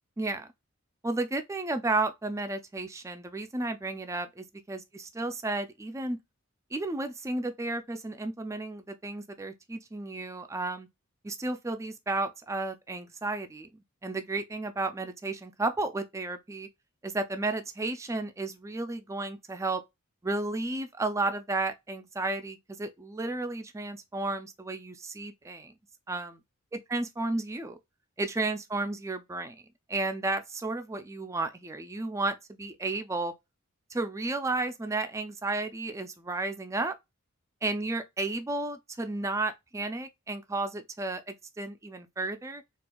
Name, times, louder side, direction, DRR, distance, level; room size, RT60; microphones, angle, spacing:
voice 1, 0.2-0.5 1.0-6.2 6.7-10.9 11.2-16.7 17.0-19.8 20.2-25.7 26.1-26.4 26.7-27.8 28.2-29.6 29.9-33.3 33.9-36.9 37.6-42.6, right 2 dB, 15° right, 0.3 m, -33 dB
4.3 x 2.4 x 2.3 m
head